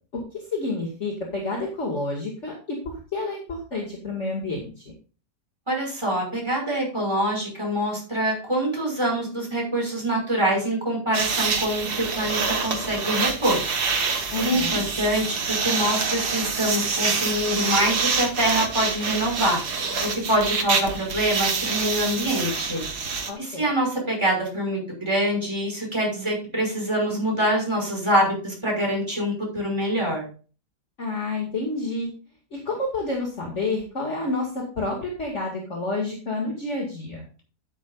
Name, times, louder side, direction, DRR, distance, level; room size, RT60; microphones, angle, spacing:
voice 1, 0.3-4.8 14.3-14.8 23.3-23.6 31.0-32.1 32.5-37.2, left 2 dB, 45° left, -1 dB, 2.5 m, -29 dB
voice 2, 5.7-13.6 14.4-19.6 20.0-22.8 23.4-24.8 25.1-30.3, equal, 15° right, -1 dB, 5.7 m, -25 dB
sound 1, 11.1-23.3, right 5 dB, 70° right, 2.0 m, -26 dB
12.0 x 11.0 x 2.5 m, 0.36 s
omnidirectional pair, 1.8 m